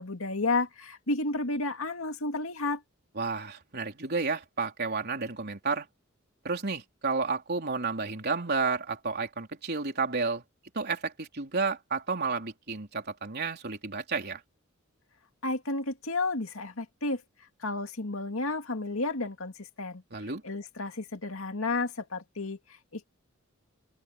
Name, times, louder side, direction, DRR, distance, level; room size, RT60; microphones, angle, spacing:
voice 1, 0.0-2.8 15.4-17.2 17.6-20.0 20.4-23.0, left 2 dB, 75° left, 2.4 m, -32 dB
voice 2, 3.2-5.9 6.4-10.4 10.7-14.4 20.1-20.4, right 4 dB, 50° right, 3.7 m, -31 dB
open air
head